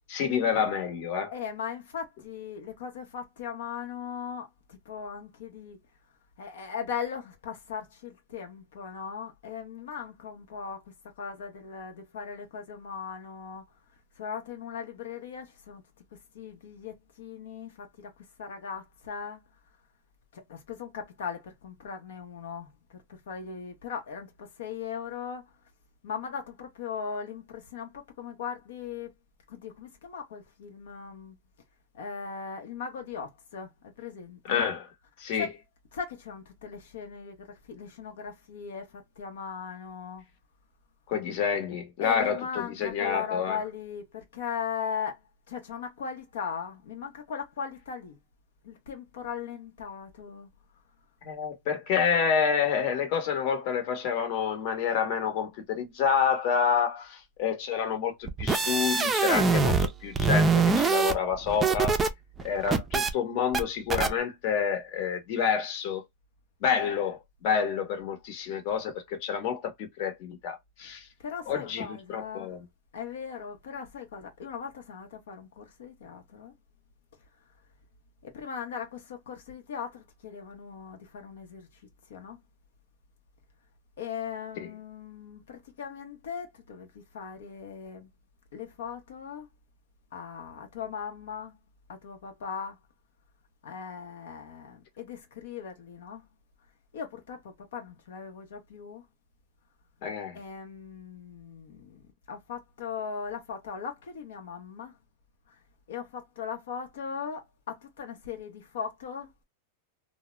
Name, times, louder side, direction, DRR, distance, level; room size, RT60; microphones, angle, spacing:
voice 1, 0.1-1.3 34.5-34.9 35.2-35.5 41.1-43.6 51.2-62.0 62.4-66.0 66.6-71.1 71.5-72.6 84.6-84.7 100.0-100.4, left 7 dB, 45° left, 0.9 m, -28 dB
voice 2, 1.3-5.8 6.4-13.6 14.2-15.8 16.1-18.1 18.4-19.4 20.3-25.5 26.0-29.1 29.5-31.4 31.9-34.7 35.4-35.5 35.9-40.2 42.0-45.2 45.5-48.2 48.6-50.5 71.2-72.6 72.9-76.5 78.2-81.7 82.1-82.4 84.0-88.1 88.5-89.5 90.1-91.6 91.9-92.8 93.6-96.3 96.9-99.0 100.3-105.0 105.5-105.6 105.9-109.3, left 7 dB, 80° left, 0.7 m, -38 dB
sound 1, 58.3-59.9 60.2-62.1 62.4-63.1 63.5-63.6 63.9-64.1, right 4 dB, 15° right, 0.4 m, -24 dB
2.3 x 2.0 x 3.0 m
supercardioid pair, 160°, 0 cm